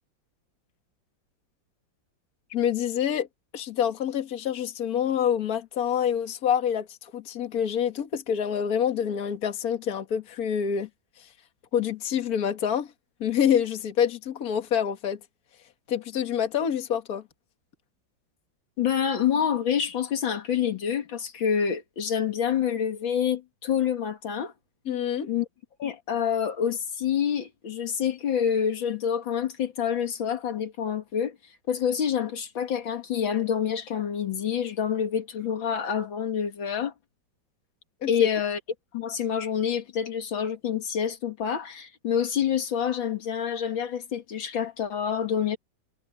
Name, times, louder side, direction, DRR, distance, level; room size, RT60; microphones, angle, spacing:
voice 1, 2.5-3.3 3.5-10.9 11.2-11.3 11.7-12.9 13.2-15.2 15.9-17.2 24.9-25.3 38.0-38.3, left 8 dB, 50° left, 2.0 m, -27 dB
voice 2, 18.8-24.5 25.3-25.5 25.8-31.4 31.7-36.9 38.1-38.6 38.9-45.6, left 8 dB, 85° left, 2.6 m, -27 dB
omnidirectional pair, 2.1 m